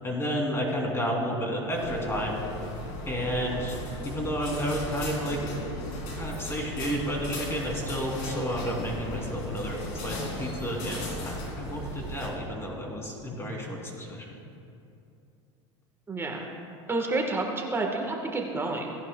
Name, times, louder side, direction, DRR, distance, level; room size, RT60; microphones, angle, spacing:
voice 1, 0.0-2.4 3.1-3.7 4.0-5.5 6.1-14.4, equal, 15° left, 0 dB, 2.6 m, -31 dB
sound 1, 1.7-12.3, left 1 dB, 65° left, 2.6 m, -36 dB
voice 2, 16.1-16.5 16.9-19.0, right 2 dB, 15° right, 1 dB, 1.3 m, -29 dB
17.5 x 11.0 x 2.2 m, 2.7 s
hypercardioid pair, 105°, 15 cm